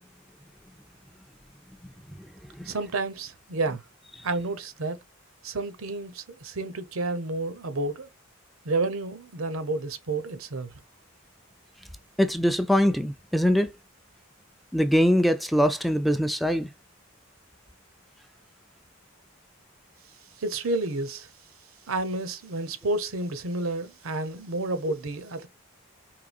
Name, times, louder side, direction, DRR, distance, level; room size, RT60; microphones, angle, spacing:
voice 1, 2.7-3.8 4.2-5.0 5.4-8.1 8.6-10.7 20.4-21.3 21.9-25.5, right 2 dB, 80° right, 0.8 m, -30 dB
voice 2, 12.2-13.7 14.7-16.7, equal, ahead, 0.3 m, -23 dB
4.8 x 3.1 x 2.4 m
head